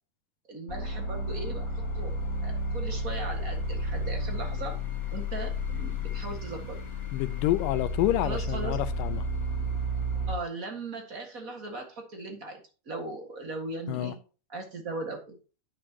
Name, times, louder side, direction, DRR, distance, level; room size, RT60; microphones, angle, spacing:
voice 1, 0.4-2.1 2.4-4.8 5.1-6.8 8.2-8.8 10.3-14.2 14.5-15.4, right 2 dB, 35° right, 1.6 m, -38 dB
sound 1, 0.7-10.4, left 1 dB, 45° left, 1.2 m, -32 dB
voice 2, 7.1-9.3 13.9-14.1, left 14 dB, 90° left, 2.3 m, -28 dB
9.9 x 8.7 x 2.9 m
omnidirectional pair, 3.8 m